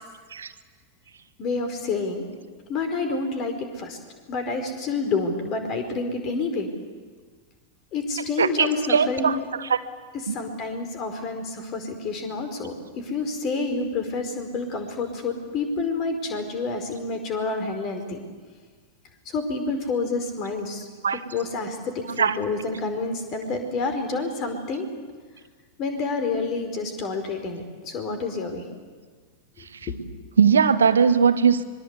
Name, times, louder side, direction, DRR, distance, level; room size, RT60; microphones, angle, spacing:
voice 1, 1.4-2.2 2.7-4.0 4.3-6.7 7.9-9.4 10.3-18.2 19.2-24.9 25.8-28.6 29.6-29.7, left 3 dB, 35° left, 7 dB, 4.9 m, -28 dB
voice 2, 8.4-9.8 10.3-10.4 21.0-21.2 22.2-22.3 30.4-31.6, right 6 dB, 70° right, 13 dB, 1.1 m, -20 dB
26.0 x 23.0 x 8.4 m, 1.5 s
figure-of-eight pair, 90°, 0 cm